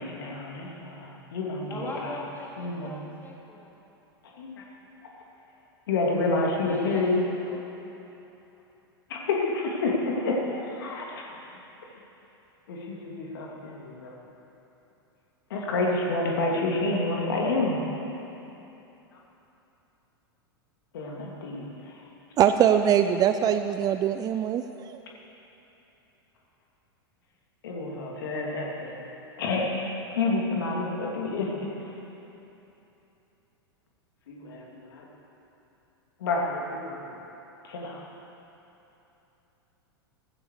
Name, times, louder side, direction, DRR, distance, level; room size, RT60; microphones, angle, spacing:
voice 1, 0.0-2.2 2.6-3.1 4.4-4.6 5.9-7.2 9.1-11.3 12.7-14.2 15.5-17.8 20.9-22.0 27.6-29.0 29.4-31.7 34.3-35.0 36.2-37.2 37.6-38.0, left 2 dB, 60° left, -2 dB, 2.7 m, -29 dB
voice 2, 1.7-3.8 6.6-8.0 17.9-18.3, left 2 dB, 15° left, -4 dB, 3.5 m, -40 dB
voice 3, 22.4-25.0, right 9 dB, 30° right, 9 dB, 0.5 m, -22 dB
15.0 x 15.0 x 4.9 m, 3.0 s
figure-of-eight pair, 90°, 13 cm